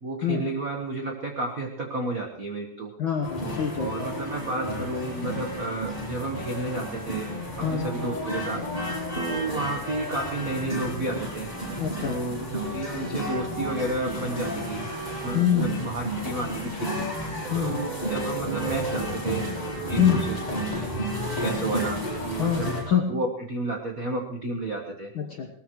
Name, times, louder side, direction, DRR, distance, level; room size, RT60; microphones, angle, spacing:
voice 1, 0.0-2.9 3.8-7.3 7.6-14.8 15.2-17.1 17.6-19.5 19.9-20.4 21.4-25.1, right 2 dB, 80° right, 2 dB, 0.7 m, -32 dB
voice 2, 3.0-4.1 7.6-7.9 11.8-12.2 15.3-15.8 17.5-17.9 20.0-20.2 22.4-23.1 25.1-25.5, left 8 dB, 65° left, 3 dB, 1.2 m, -25 dB
sound 1, 3.2-22.8, equal, 10° left, 7.5 m, -31 dB
20.0 x 19.0 x 3.1 m, 0.67 s
omnidirectional pair, 3.7 m